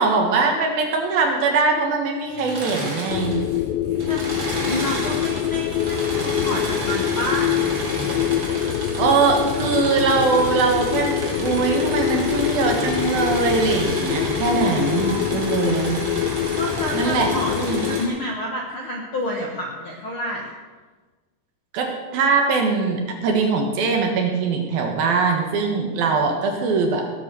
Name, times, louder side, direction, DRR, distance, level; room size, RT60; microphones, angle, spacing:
voice 1, 0.0-3.4 8.6-8.7 9.0-16.0 16.9-17.8 21.7-27.0, right 4 dB, 65° right, 2 dB, 3.1 m, -21 dB
Engine / Mechanisms, 2.3-3.6 3.9-18.0, right 1 dB, 30° right, 2.9 m, -31 dB
sound 1, 3.1-18.0, left 11 dB, 90° left, 2.0 m, -25 dB
voice 2, 4.5-7.5 14.4-15.4 16.5-17.5 17.8-20.5, left 1 dB, 75° left, -1 dB, 1.2 m, -29 dB
17.5 x 8.1 x 6.9 m, 1.3 s
omnidirectional pair, 4.9 m